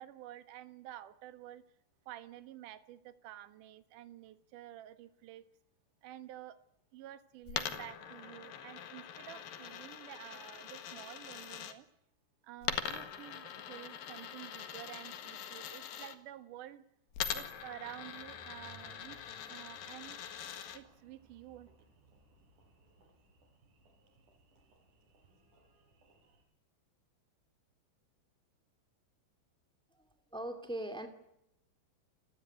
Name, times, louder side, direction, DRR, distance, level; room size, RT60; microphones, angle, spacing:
voice 1, 0.0-1.6 2.1-5.4 6.0-6.6 6.9-11.9 12.4-16.8 17.3-19.2 19.5-20.2 20.7-21.8, right 13 dB, 70° right, 11 dB, 2.0 m, -50 dB
Coin (dropping), 7.5-11.7 12.6-16.2 17.1-20.8, left 9 dB, 60° left, 3.0 m, -42 dB
Engine, 17.5-26.4, right 2 dB, 45° right, 7.4 m, -63 dB
voice 2, 30.0-31.1, right 1 dB, 10° left, 7 dB, 0.3 m, -41 dB
30.0 x 18.5 x 9.4 m, 0.85 s
omnidirectional pair, 5.4 m